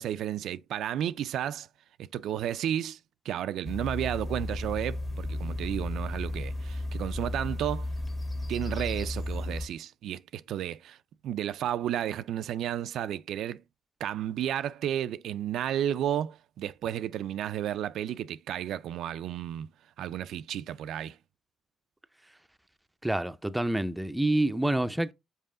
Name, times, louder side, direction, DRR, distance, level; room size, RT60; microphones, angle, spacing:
voice 1, 0.0-1.7 2.0-3.0 3.3-7.9 8.5-11.0 11.2-13.6 14.0-19.7 20.0-21.2, right 11 dB, 75° right, 0.3 m, -32 dB
sound 1, 3.6-9.7, left 1 dB, 30° left, 1.4 m, -34 dB
voice 2, 23.0-25.1, right 1 dB, 10° right, 0.5 m, -27 dB
5.5 x 4.7 x 3.7 m
cardioid pair, 90°, 0 cm